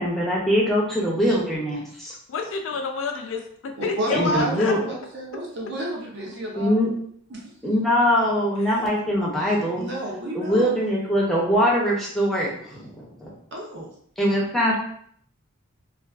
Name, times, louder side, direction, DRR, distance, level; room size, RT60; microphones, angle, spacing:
voice 1, 0.0-1.8 4.1-4.8 6.6-6.9 7.6-9.8 10.3-13.3 14.2-14.8, equal, ahead, -5 dB, 0.5 m, -22 dB
voice 2, 2.3-4.8 8.6-8.8, left 4 dB, 65° left, 4 dB, 0.3 m, -29 dB
voice 3, 3.8-6.7 7.3-7.4 9.8-10.8 13.5-13.9, right 1 dB, 55° right, -2 dB, 0.6 m, -31 dB
2.4 x 2.3 x 2.3 m, 0.64 s
head